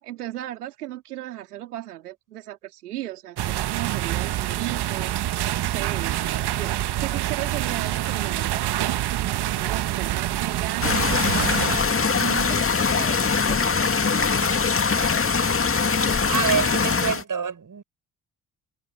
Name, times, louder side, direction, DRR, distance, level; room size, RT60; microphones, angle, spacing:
voice 1, 0.0-11.0 11.3-12.6 13.0-14.0, right 14 dB, 85° right, 3.5 m, -36 dB
sound 1, 3.4-11.8, right 13 dB, 60° right, 1.6 m, -26 dB
sound 2, 10.8-17.2, left 5 dB, 30° left, 2.3 m, -22 dB
voice 2, 16.3-17.8, right 6 dB, 45° right, 7.7 m, -26 dB
hypercardioid pair, 40°, 44 cm